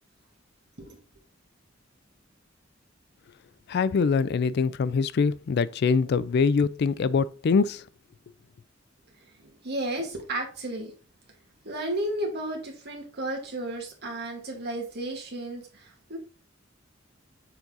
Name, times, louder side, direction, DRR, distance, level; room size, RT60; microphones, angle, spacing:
voice 1, 3.7-7.8, left 5 dB, 55° left, 0.3 m, -24 dB
voice 2, 9.4-10.9 11.6-16.2, right 1 dB, 55° right, 2.0 m, -33 dB
7.2 x 4.0 x 3.7 m
head